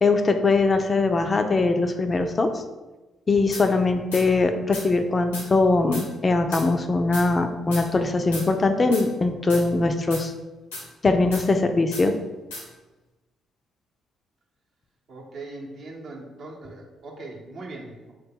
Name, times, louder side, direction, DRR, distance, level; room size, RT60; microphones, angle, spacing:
voice 1, 0.0-2.6 3.3-10.3 11.0-12.1, left 3 dB, 35° left, 7 dB, 0.3 m, -21 dB
sound 1, 3.5-3.7 4.1-4.3 4.7-4.9 5.3-5.5 5.9-6.1 6.5-6.7 7.1-7.3 7.7-7.9 8.3-8.5 8.9-9.1 9.5-9.6 10.1-10.2 10.7-10.9 11.3-11.5 11.9-12.1 12.5-12.6, left 2 dB, 90° left, 0.7 m, -35 dB
voice 2, 15.1-18.1, right 2 dB, 60° right, -1 dB, 0.7 m, -40 dB
3.0 x 2.2 x 3.5 m, 1.1 s
hypercardioid pair, 45°, 0 cm